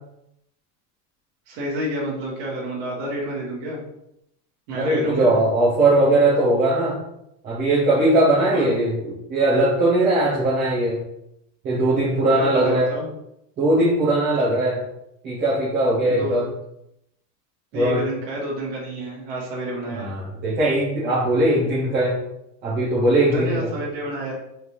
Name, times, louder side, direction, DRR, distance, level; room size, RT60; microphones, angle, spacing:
voice 1, 1.5-3.8 4.7-5.4 8.3-8.7 12.3-13.1 16.1-16.5 17.7-20.1 23.3-24.3, right 1 dB, 45° right, -5 dB, 1.5 m, -29 dB
voice 2, 4.7-7.0 7.4-11.0 11.6-12.9 13.6-14.8 15.2-16.4 17.7-18.0 19.9-22.2 22.6-23.7, right 1 dB, 20° right, -9 dB, 0.7 m, -20 dB
4.3 x 3.4 x 3.0 m, 0.81 s
supercardioid pair, 170°, 49 cm